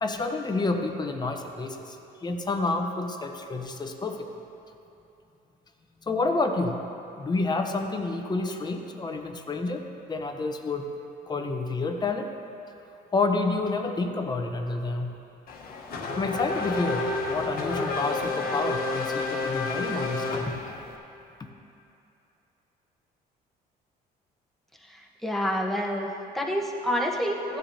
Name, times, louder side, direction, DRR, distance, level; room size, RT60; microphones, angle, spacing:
voice 1, 0.0-2.0 2.2-4.3 6.1-6.8 7.2-10.9 11.3-12.3 13.1-15.1 16.2-20.6, left 3 dB, 25° left, 5 dB, 0.8 m, -29 dB
Race car auto racing / Accelerating revving vroom, 15.5-21.0, left 3 dB, 60° left, 1.2 m, -30 dB
voice 2, 24.8-27.6, equal, ahead, -2 dB, 1.2 m, -28 dB
16.0 x 9.8 x 2.8 m, 2.8 s
cardioid pair, 110°, 17 cm